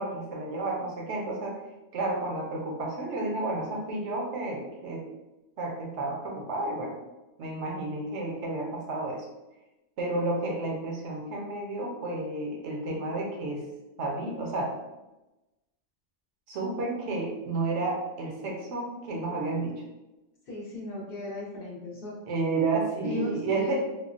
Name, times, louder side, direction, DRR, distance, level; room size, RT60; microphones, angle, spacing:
voice 1, 0.0-1.6 1.9-5.0 5.6-7.0 7.4-9.2 10.0-13.6 14.0-14.7 16.5-19.8 22.3-23.7, right 2 dB, 70° right, -1 dB, 0.9 m, -31 dB
voice 2, 20.5-22.2 23.0-23.7, equal, 55° left, -4 dB, 0.8 m, -37 dB
3.5 x 2.0 x 2.4 m, 1.0 s
omnidirectional pair, 1.3 m